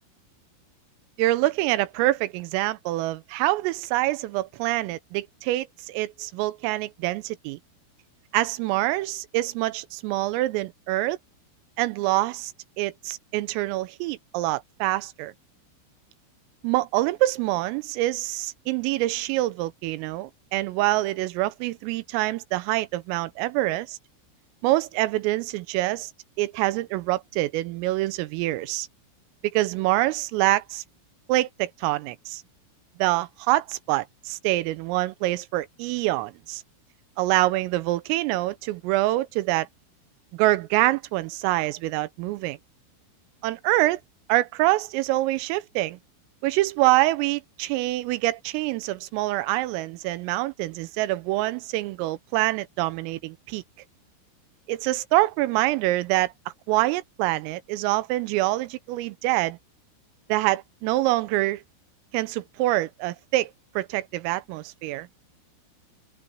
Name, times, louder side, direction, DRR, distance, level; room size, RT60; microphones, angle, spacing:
voice 1, 1.2-7.6 8.3-11.2 11.8-15.3 16.6-24.0 24.6-26.1 26.4-28.9 29.5-30.8 31.3-32.4 33.0-36.6 37.2-39.7 40.3-42.6 43.4-44.0 44.3-46.0 46.4-53.6 54.7-56.3 56.7-59.6 60.3-61.6 62.1-63.5 63.8-65.1, right 17 dB, 90° right, 3.5 m, -25 dB
omnidirectional pair, 5.8 m